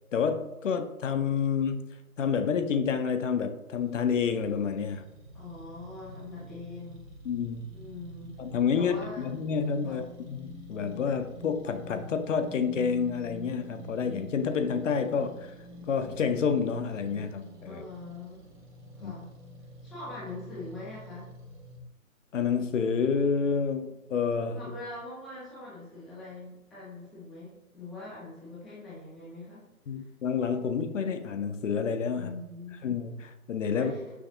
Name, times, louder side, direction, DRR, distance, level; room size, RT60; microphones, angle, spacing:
voice 1, 0.1-1.9 2.2-5.1 7.3-7.7 8.4-15.5 15.9-17.8 19.0-19.1 22.3-24.6 29.9-32.3 32.8-33.9, left 6 dB, 60° left, 8 dB, 0.5 m, -29 dB
sound 1, 3.7-21.8, left 1 dB, 35° right, 1.0 m, -48 dB
voice 2, 5.3-7.0 7.7-8.4 8.7-9.3 9.8-10.1 17.6-18.5 18.9-19.3 19.8-21.3 24.5-29.7 30.0-30.1 32.1-32.8 33.7-34.1, left 2 dB, ahead, -8 dB, 0.3 m, -43 dB
5.8 x 2.6 x 2.5 m, 1.0 s
figure-of-eight pair, 145°, 43 cm